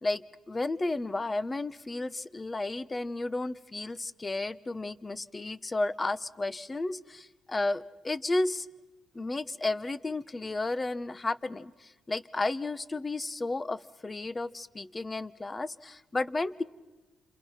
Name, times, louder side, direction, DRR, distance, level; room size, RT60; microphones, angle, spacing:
voice 1, 0.0-8.7 9.1-16.6, left 2 dB, 25° left, 15 dB, 1.1 m, -33 dB
30.0 x 27.0 x 5.9 m, 1.2 s
cardioid pair, 90°, 0 cm